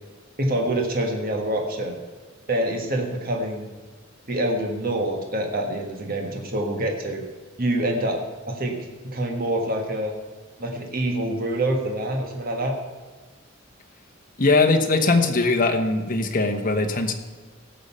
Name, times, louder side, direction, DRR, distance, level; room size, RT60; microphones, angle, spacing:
voice 1, 0.4-2.0 2.5-3.7 4.3-7.2 7.6-8.2 8.5-8.8 9.0-10.1 10.6-12.7, right 1 dB, 50° right, 2 dB, 1.6 m, -26 dB
voice 2, 14.4-17.1, left 3 dB, 45° left, 5 dB, 1.2 m, -20 dB
17.0 x 6.7 x 5.6 m, 1.4 s
head